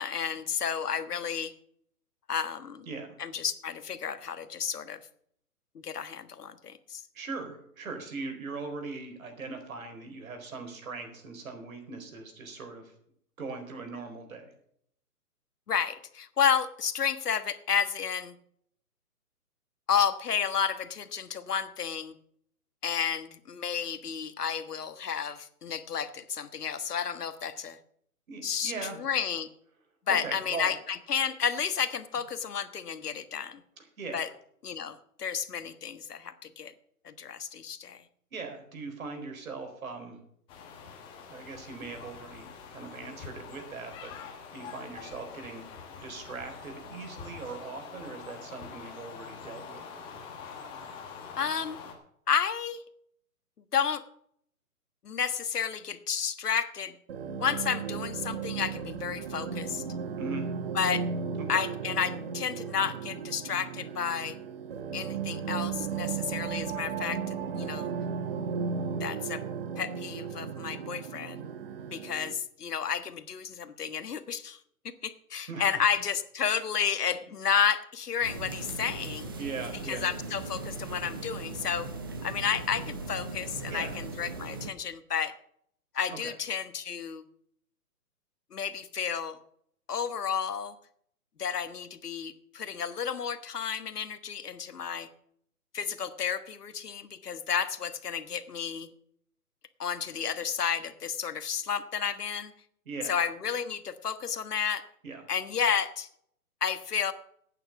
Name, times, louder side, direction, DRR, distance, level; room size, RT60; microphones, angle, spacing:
voice 1, 0.0-1.5 2.3-2.9 3.2-5.0 5.7-7.0 15.7-18.4 19.9-22.1 22.8-27.8 28.4-28.7 29.0-29.5 30.1-33.6 34.1-34.3 34.6-36.7 37.0-38.0 51.3-51.8 52.3-52.8 53.7-54.0 55.0-57.0 57.4-59.8 60.7-61.0 61.5-64.4 64.9-67.9 69.0-69.4 69.8-71.4 71.9-74.6 75.0-79.3 79.9-81.9 82.2-85.4 85.9-87.2 88.5-89.4 89.9-90.7 91.4-95.1 95.7-98.9 99.8-102.5 103.1-104.8 105.3-106.1 106.6-107.1, left 7 dB, 80° left, 12 dB, 1.5 m, -31 dB
voice 2, 2.9-3.2 7.1-12.9 13.4-14.5 28.3-29.0 30.1-30.7 33.8-34.2 38.3-40.2 41.3-45.6 46.0-49.8 60.2-60.5 61.4-61.6 75.5-75.8 79.4-80.1 83.7-84.0 86.2-86.3 102.9-103.2 105.0-105.2, right 4 dB, 60° right, 5 dB, 4.5 m, -40 dB
sound 1, 40.5-51.9, left 6 dB, 10° left, 1.1 m, -45 dB
sound 2, 57.1-72.3, right 6 dB, 40° right, 1.2 m, -35 dB
sound 3, 78.2-84.7, right 3 dB, 15° right, 0.6 m, -39 dB
11.0 x 9.2 x 7.0 m, 0.68 s
hypercardioid pair, 155°, 46 cm